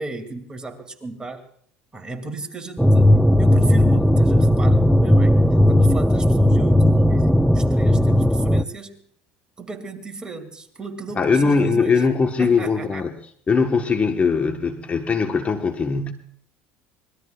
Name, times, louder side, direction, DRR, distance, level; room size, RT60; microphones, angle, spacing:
voice 1, 0.0-1.5 1.9-5.4 5.7-9.0 9.6-11.9 12.4-13.1, right 3 dB, 15° right, 5 dB, 2.6 m, -35 dB
sound 1, 2.8-8.6, left 1 dB, ahead, 0.6 m, -16 dB
voice 2, 11.2-13.1 13.5-16.1, left 4 dB, 30° left, 5 dB, 1.3 m, -20 dB
25.0 x 20.5 x 2.4 m, 0.62 s
supercardioid pair, 85°, 5 cm